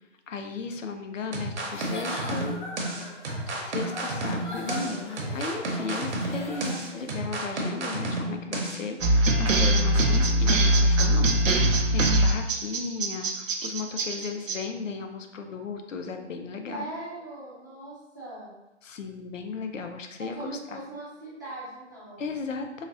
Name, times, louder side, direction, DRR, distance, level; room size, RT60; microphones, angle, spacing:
voice 1, 0.3-2.6 3.6-16.9 18.8-20.8 22.2-22.9, left 4 dB, 85° left, 6 dB, 0.5 m, -35 dB
sound 1, 1.3-8.8, right 1 dB, 65° right, 0.9 m, -31 dB
Giggle / Chuckle chortle, 1.6-7.1, left 1 dB, 40° left, 0.6 m, -40 dB
sound 2, 9.0-14.6, right 1 dB, 90° right, 0.6 m, -22 dB
voice 2, 16.7-18.5 20.2-22.3, right 2 dB, 15° right, -11 dB, 0.5 m, -40 dB
3.9 x 2.1 x 2.5 m, 0.97 s
hypercardioid pair, 155°, 37 cm